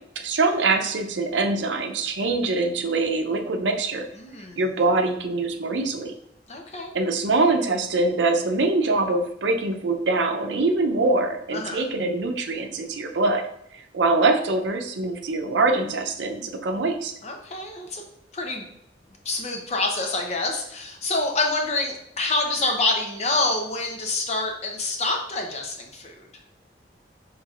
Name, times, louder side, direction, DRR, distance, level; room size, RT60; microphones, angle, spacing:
voice 1, 0.2-4.1 4.6-6.1 6.9-13.4 13.7-17.1, right 3 dB, 85° right, 5 dB, 0.6 m, -23 dB
voice 2, 4.2-4.7 6.5-6.9 11.5-11.8 17.2-18.0 18.3-18.7 19.2-26.3, left 2 dB, 35° left, 3 dB, 0.6 m, -27 dB
5.8 x 3.1 x 2.4 m, 0.73 s
head